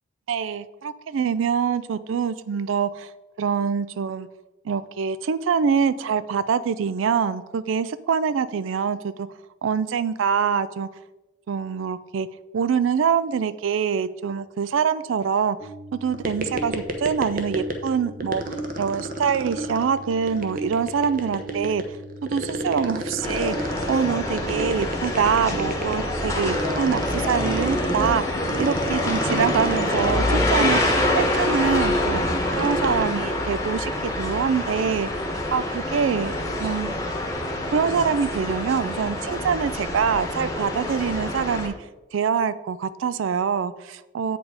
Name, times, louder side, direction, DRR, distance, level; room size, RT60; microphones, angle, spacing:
voice 1, 0.3-3.1 3.4-4.3 4.6-9.3 9.6-10.9 11.5-12.3 12.5-15.6 16.0-21.8 22.2-32.2 32.6-35.2 35.5-36.9 37.7-44.4, right 6 dB, 85° right, 16 dB, 0.4 m, -25 dB
sound 1, 15.6-31.5, right 1 dB, 30° left, 0.6 m, -38 dB
sound 2, 16.1-17.9 18.2-33.1, right 1 dB, 45° right, 0.9 m, -32 dB
sound 3, 23.2-41.7, left 1 dB, 15° left, 1.1 m, -26 dB
8.0 x 5.1 x 4.8 m, 1.1 s
head